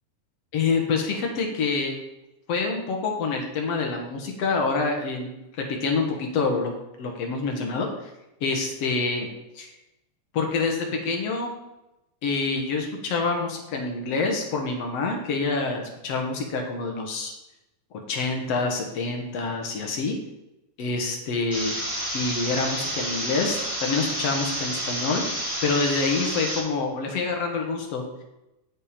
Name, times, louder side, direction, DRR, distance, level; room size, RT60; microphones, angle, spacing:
voice 1, 0.5-2.0 2.5-5.3 5.6-6.7 7.0-8.1 8.4-9.3 9.6-9.7 10.3-11.5 12.2-17.3 18.1-20.2 20.8-21.7 22.1-25.2 25.6-28.2, left 4 dB, 55° left, 2 dB, 2.3 m, -26 dB
sound 1, 21.5-26.6, equal, 5° right, 2.7 m, -30 dB
9.2 x 7.8 x 5.2 m, 0.93 s
omnidirectional pair, 3.9 m